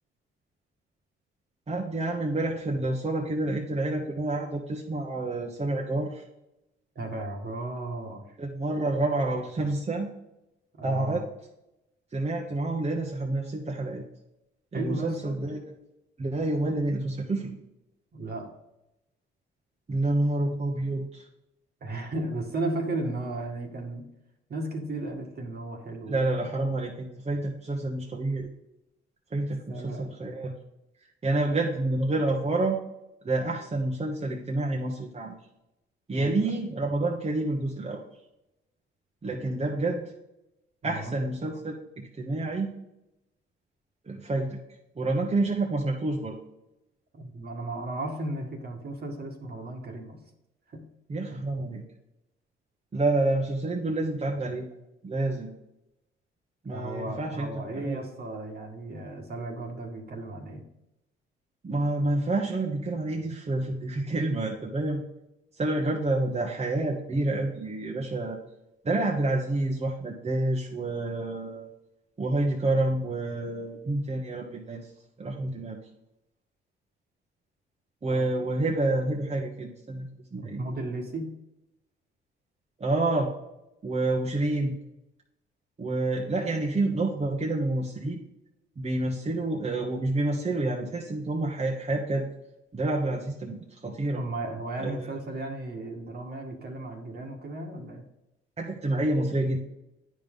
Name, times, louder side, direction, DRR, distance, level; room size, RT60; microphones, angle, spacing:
voice 1, 1.7-6.2 8.4-10.1 10.8-11.2 12.1-14.0 14.7-15.6 16.2-17.5 19.9-21.2 26.1-28.5 29.3-30.5 31.2-32.8 33.2-35.4 36.1-38.0 39.2-40.0 40.8-41.7 42.2-42.7 44.0-44.6 45.0-46.3 51.1-51.8 52.9-54.7 55.0-55.5 56.6-58.0 61.6-65.0 65.6-68.4 68.8-71.7 72.2-74.9 75.2-75.8 78.0-80.6 82.8-83.3 83.8-84.8 85.8-88.2 88.8-92.3 92.7-94.2 94.8-95.0 98.6-99.6, right 2 dB, 30° right, -1 dB, 1.2 m, -28 dB
voice 2, 7.0-8.2 10.8-11.2 14.7-15.4 18.1-18.5 21.8-24.0 24.5-26.2 29.7-30.1 36.1-36.5 39.6-39.7 40.8-41.2 47.1-50.2 50.7-50.8 51.3-51.5 56.7-60.6 78.1-78.5 80.4-81.3 94.2-98.0, right 2 dB, 50° right, 2 dB, 1.8 m, -35 dB
9.1 x 5.3 x 3.8 m, 0.90 s
cardioid pair, 75°, 21 cm